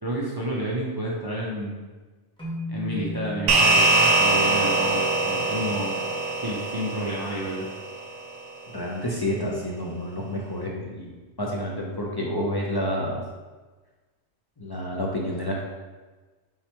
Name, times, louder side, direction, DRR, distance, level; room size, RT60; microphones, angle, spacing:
voice 1, 0.0-1.8 2.7-6.0 6.4-7.7, right 1 dB, 40° right, -4 dB, 0.3 m, -30 dB
sound 1, 2.4-6.7, left 2 dB, 5° left, 0.9 m, -37 dB
sound 2, 3.5-8.1, right 3 dB, 80° right, 0.9 m, -23 dB
voice 2, 8.7-13.2 14.6-15.6, equal, 35° left, -3 dB, 0.3 m, -29 dB
3.8 x 2.9 x 4.3 m, 1.3 s
omnidirectional pair, 1.2 m